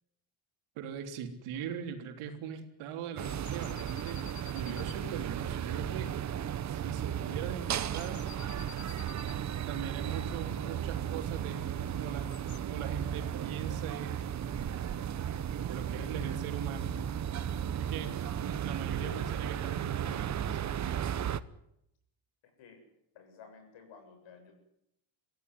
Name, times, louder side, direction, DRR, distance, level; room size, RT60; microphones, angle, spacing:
voice 1, 0.8-4.2 4.5-6.1 6.7-8.2 9.7-14.8 15.7-17.1 17.7-20.6, right 8 dB, 85° right, 5 dB, 3.7 m, -41 dB
sound 1, 3.2-5.0 6.1-6.5 6.8-7.1 7.7-9.4 11.9-12.6, left 11 dB, 45° left, 1.4 m, -52 dB
sound 2, 3.2-21.4, right 9 dB, 35° right, 0.9 m, -35 dB
voice 2, 22.4-22.8 23.1-24.5, left 5 dB, 65° left, 6 dB, 7.7 m, -54 dB
23.5 x 15.5 x 9.7 m, 0.79 s
cardioid pair, 125°, 49 cm